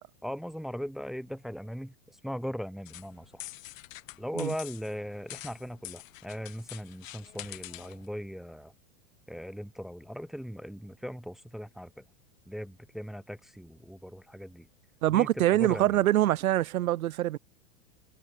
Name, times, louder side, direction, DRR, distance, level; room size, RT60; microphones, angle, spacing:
voice 1, 0.2-3.4 4.2-8.7 9.3-12.0 12.5-14.7 15.1-16.0, equal, ahead, 0.8 m, -39 dB
sound 1, 2.9-8.1, left 16 dB, 70° left, 1.2 m, -46 dB
voice 2, 15.0-17.4, right 14 dB, 85° right, 1.3 m, -24 dB
supercardioid pair, 160°, 41 cm